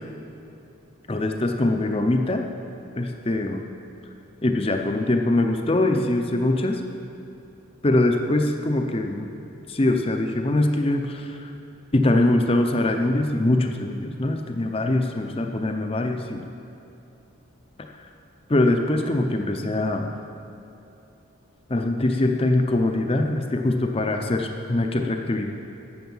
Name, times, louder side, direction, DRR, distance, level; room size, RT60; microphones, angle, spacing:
voice 1, 1.1-2.5 3.0-3.6 4.4-6.8 7.8-9.3 9.7-11.5 11.9-16.4 18.5-20.1 21.7-25.5, left 2 dB, 25° left, 4 dB, 0.6 m, -23 dB
12.0 x 7.9 x 5.5 m, 2.9 s
head